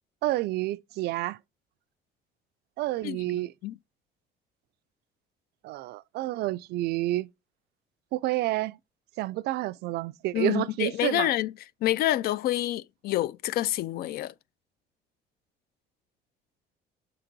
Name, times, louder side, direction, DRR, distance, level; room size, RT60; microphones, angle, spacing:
voice 1, 0.2-1.4 2.8-3.5 5.6-7.3 8.1-8.8 9.2-11.3, right 16 dB, 75° right, 0.4 m, -29 dB
voice 2, 3.0-3.8 10.3-11.5 11.8-14.3, left 14 dB, 65° left, 0.4 m, -28 dB
6.6 x 3.9 x 4.6 m
cardioid pair, 110°, 17 cm